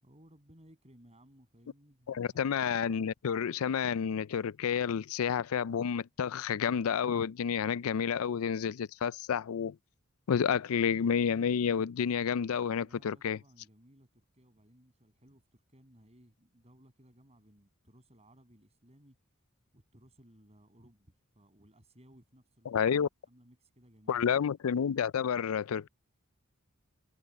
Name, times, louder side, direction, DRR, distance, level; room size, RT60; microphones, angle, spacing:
voice 1, 0.0-2.5 12.8-19.2 19.7-22.8 23.3-24.3, equal, 30° right, 7.6 m, -61 dB
voice 2, 2.1-9.8 10.3-13.4 22.7-23.1 24.1-25.9, left 7 dB, 80° left, 0.4 m, -30 dB
head